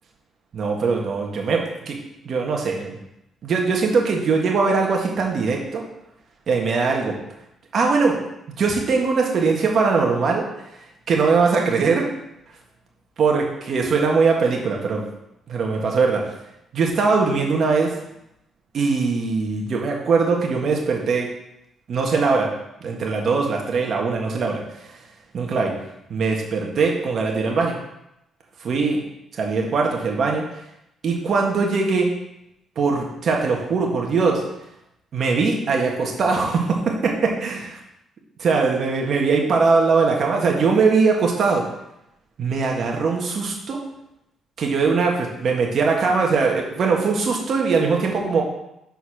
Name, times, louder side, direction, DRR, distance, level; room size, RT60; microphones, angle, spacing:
voice 1, 0.5-2.0 2.2-3.0 3.4-5.8 6.5-7.1 7.7-8.2 8.6-10.5 11.1-12.1 13.2-15.0 15.5-16.2 16.7-18.0 18.7-21.3 21.9-22.5 22.8-24.6 25.3-25.7 26.1-27.8 28.6-29.0 29.3-30.4 31.0-32.1 32.7-34.4 35.1-37.8 38.4-41.6 42.4-43.8 44.6-48.4, right 4 dB, 55° right, 0 dB, 1.7 m, -21 dB
6.6 x 4.5 x 5.8 m, 0.84 s
cardioid pair, 90°, 0 cm